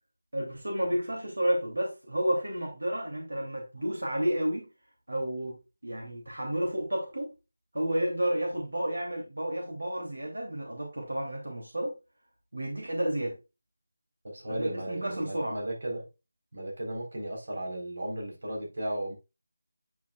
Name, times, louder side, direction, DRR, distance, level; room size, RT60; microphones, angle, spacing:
voice 1, 0.3-4.7 5.1-7.3 7.7-11.9 12.5-13.4 14.5-15.6, right 1 dB, 90° right, 2.7 m, -31 dB
voice 2, 14.2-16.1 16.5-19.1, right 1 dB, 55° right, 3.9 m, -35 dB
8.6 x 6.1 x 2.3 m
figure-of-eight pair, 170°, 0 cm